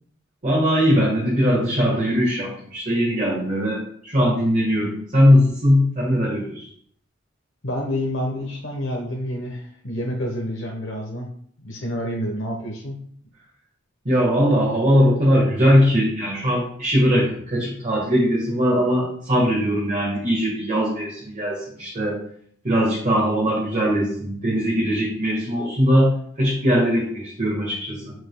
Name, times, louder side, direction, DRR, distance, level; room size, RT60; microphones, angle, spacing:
voice 1, 0.4-6.7 14.0-22.2 22.6-28.1, equal, 40° right, -5 dB, 1.5 m, -20 dB
voice 2, 7.6-11.3 11.6-13.0, equal, 70° left, -1 dB, 1.0 m, -28 dB
7.2 x 6.2 x 2.2 m, 0.62 s
head